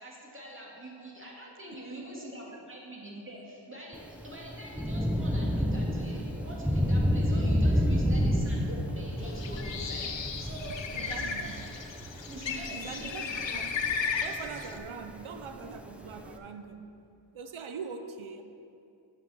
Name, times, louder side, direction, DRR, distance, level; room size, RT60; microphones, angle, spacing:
voice 1, 0.0-10.1 10.4-11.6 12.3-13.4 13.9-14.0, equal, 25° right, -4 dB, 2.3 m, -44 dB
voice 2, 1.8-2.3 10.9-11.5 12.7-13.8 14.2-16.8 17.3-18.4, right 5 dB, 80° right, 8 dB, 0.6 m, -42 dB
Thunder / Rain, 3.9-16.4, equal, 5° right, 0.6 m, -30 dB
Bird, 9.2-14.8, left 6 dB, 65° left, 0.7 m, -35 dB
8.1 x 5.6 x 6.8 m, 2.6 s
wide cardioid pair, 50°, 48 cm